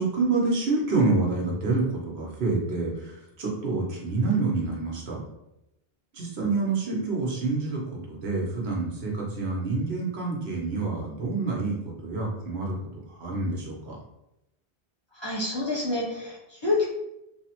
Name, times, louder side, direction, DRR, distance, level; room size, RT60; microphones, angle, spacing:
voice 1, 0.0-5.2 6.1-7.8 8.1-11.8 12.0-12.8 13.1-14.0, right 3 dB, 85° right, -2 dB, 1.1 m, -27 dB
voice 2, 15.1-16.8, left 2 dB, 30° left, -7 dB, 0.7 m, -28 dB
3.2 x 2.0 x 2.9 m, 0.88 s
omnidirectional pair, 1.0 m